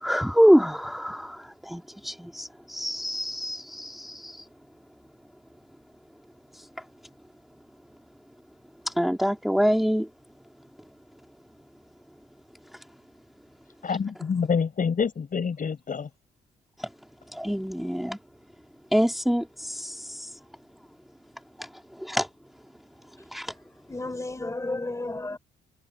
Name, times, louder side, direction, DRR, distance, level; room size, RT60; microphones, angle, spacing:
voice 1, 0.0-4.4 8.9-10.1 16.8-16.9 17.3-18.2 18.9-20.3 21.6-21.7 22.0-22.3 23.3-23.5, equal, ahead, 2.4 m, -25 dB
voice 2, 13.8-16.1, left 6 dB, 45° left, 7.4 m, -27 dB
voice 3, 23.9-25.4, left 2 dB, 15° left, 3.6 m, -32 dB
cardioid pair, 90°, 20 cm